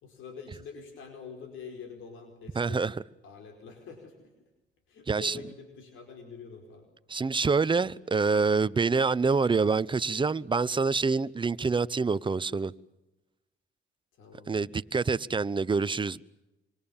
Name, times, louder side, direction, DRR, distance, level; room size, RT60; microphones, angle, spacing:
voice 1, 0.0-2.9 3.2-4.3 4.9-6.9 14.1-14.7, left 5 dB, 85° left, 5.0 m, -45 dB
voice 2, 2.5-2.9 5.1-5.4 7.1-12.7 14.5-16.2, right 4 dB, 25° right, 0.8 m, -26 dB
26.0 x 25.5 x 7.3 m
cardioid pair, 90°, 20 cm